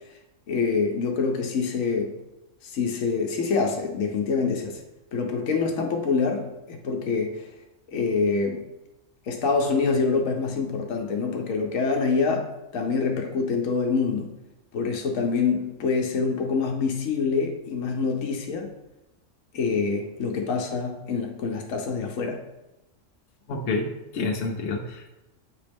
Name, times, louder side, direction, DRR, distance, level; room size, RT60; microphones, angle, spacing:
voice 1, 0.5-2.2 2.6-4.8 5.1-7.5 7.9-8.6 9.2-14.4 14.7-18.7 19.5-22.4, left 4 dB, 90° left, 2 dB, 1.2 m, -26 dB
voice 2, 23.5-25.1, left 3 dB, 70° left, 1 dB, 1.2 m, -29 dB
7.6 x 3.0 x 5.1 m, 0.97 s
omnidirectional pair, 1.3 m